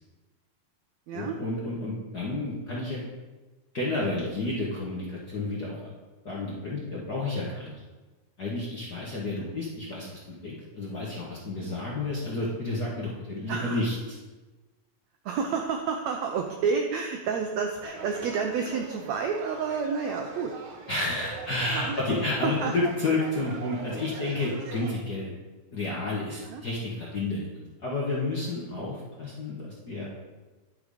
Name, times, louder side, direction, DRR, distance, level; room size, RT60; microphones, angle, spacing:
voice 1, 1.1-3.0 3.7-5.9 6.2-7.8 8.4-13.9 20.9-25.3 25.7-30.1, left 2 dB, 50° left, -6 dB, 1.2 m, -31 dB
voice 2, 13.5-13.9 15.2-20.5 21.7-22.0 22.4-22.7 26.4-26.6, right 5 dB, 90° right, 3 dB, 1.5 m, -29 dB
sound 1, 17.8-24.9, right 3 dB, 65° right, 2.3 m, -42 dB
11.0 x 6.2 x 5.0 m, 1.2 s
omnidirectional pair, 4.0 m